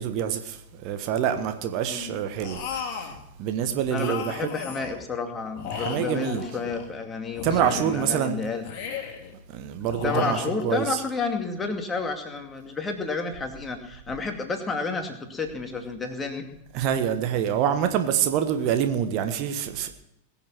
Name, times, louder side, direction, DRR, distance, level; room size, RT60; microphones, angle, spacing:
voice 1, 0.0-4.5 5.7-6.4 7.4-8.4 9.5-11.0 16.7-19.9, right 9 dB, 40° right, 1.3 m, -26 dB
sound 1, 2.4-3.2 3.9-5.0 5.5-6.9 7.3-8.1 8.6-9.3 9.9-10.9, left 6 dB, 40° left, 3.1 m, -35 dB
voice 2, 3.9-8.6 10.0-16.5, left 4 dB, 15° left, 2.3 m, -31 dB
21.5 x 7.3 x 6.2 m
figure-of-eight pair, 90°, 0 cm